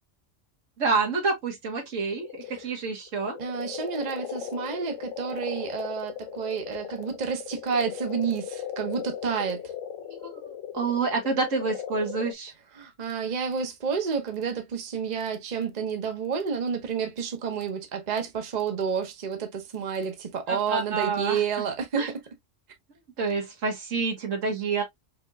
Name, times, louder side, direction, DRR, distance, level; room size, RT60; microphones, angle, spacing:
voice 1, 0.8-3.4 10.1-10.4 10.7-12.5 20.5-21.4 21.9-22.1 23.2-24.8, right 4 dB, 80° right, 1.6 m, -28 dB
sound 1, 2.1-12.3, left 8 dB, 85° left, 1.0 m, -38 dB
voice 2, 3.4-9.6 12.8-22.0, right 6 dB, 40° right, 0.9 m, -30 dB
5.1 x 2.9 x 2.3 m
omnidirectional pair, 1.3 m